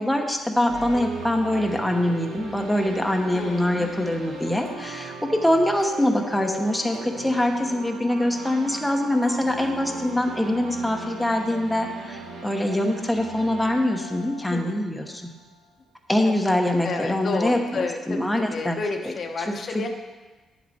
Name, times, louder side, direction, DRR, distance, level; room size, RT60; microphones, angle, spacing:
voice 1, 0.0-15.3 16.1-18.8, left 1 dB, 5° left, 1 dB, 1.0 m, -24 dB
sound 1, 0.7-15.5, right 2 dB, 85° right, 1.3 m, -38 dB
voice 2, 3.3-3.8 5.3-5.4 14.5-14.8 16.2-16.3 16.8-19.9, left 4 dB, 50° left, 3 dB, 1.0 m, -31 dB
9.8 x 7.5 x 4.3 m, 1.3 s
cardioid pair, 90°, 0 cm